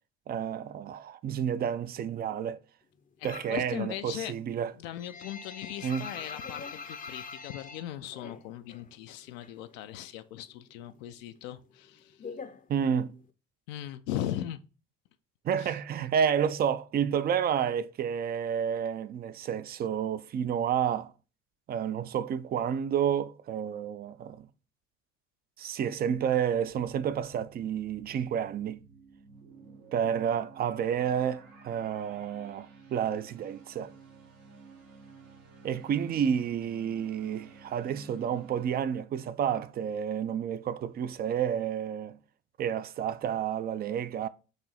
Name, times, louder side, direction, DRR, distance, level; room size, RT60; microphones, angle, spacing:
voice 1, 0.3-2.6 3.2-4.7 5.8-6.1 12.7-13.2 15.4-21.1 21.7-24.5 25.6-28.8 29.9-33.9 35.6-42.2 42.6-44.3, right 8 dB, 25° right, 0.3 m, -30 dB
sound 1, 3.2-3.7 4.0-8.9 9.1-10.2 10.5-13.3, left 5 dB, 20° left, 0.6 m, -44 dB
voice 2, 3.5-4.3 4.8-12.2 13.7-14.6 15.6-15.7, left 12 dB, 75° left, 0.5 m, -38 dB
sound 2, 26.7-38.8, right 4 dB, 80° right, 1.3 m, -53 dB
4.9 x 2.7 x 4.1 m
hypercardioid pair, 60°, 40 cm